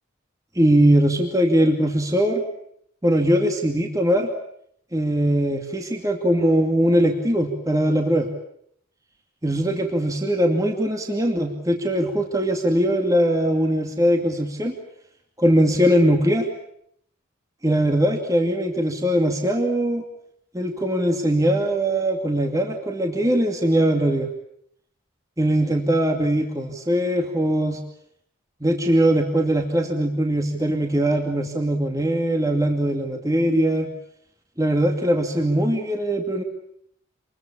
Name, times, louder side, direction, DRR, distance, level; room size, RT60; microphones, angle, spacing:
voice 1, 0.6-2.4 3.0-4.3 4.9-8.3 9.4-14.8 15.4-16.5 17.6-20.0 20.5-24.3 25.4-27.8 28.6-33.9 34.6-36.4, right 1 dB, 15° right, 4 dB, 2.4 m, -21 dB
27.5 x 22.0 x 8.7 m, 0.69 s
head